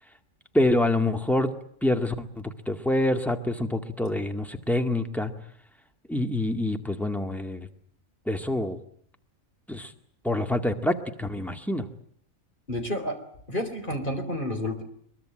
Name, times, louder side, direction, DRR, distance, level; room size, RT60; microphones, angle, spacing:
voice 1, 0.5-1.5 1.8-5.3 6.1-7.7 8.3-8.8 9.7-9.9 10.2-11.9, left 1 dB, ahead, 5 dB, 2.0 m, -26 dB
voice 2, 12.7-13.2 13.5-14.8, left 1 dB, 35° left, 6 dB, 4.2 m, -30 dB
23.0 x 22.5 x 8.9 m, 0.64 s
omnidirectional pair, 1.4 m